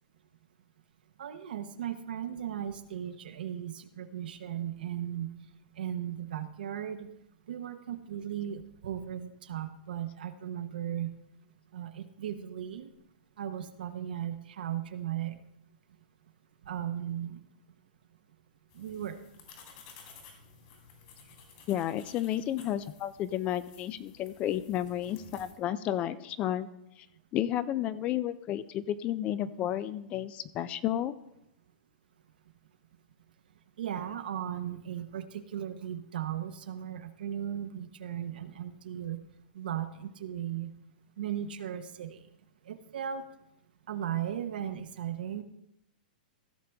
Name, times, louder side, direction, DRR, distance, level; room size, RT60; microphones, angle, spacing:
voice 1, 1.2-5.3 5.8-7.1 7.5-11.1 11.7-12.9 13.4-15.4 16.6-17.4 18.7-19.2 33.8-39.2 39.5-40.7 41.2-42.2 42.7-43.2 43.9-45.4, right 10 dB, 75° right, 9 dB, 0.9 m, -36 dB
sound 1, 18.7-25.5, left 5 dB, 45° left, 2.8 m, -54 dB
voice 2, 21.7-26.7 27.0-27.1 27.3-31.2, left 12 dB, 25° left, 15 dB, 0.4 m, -32 dB
15.5 x 6.7 x 3.4 m, 0.83 s
hypercardioid pair, 155°, 5 cm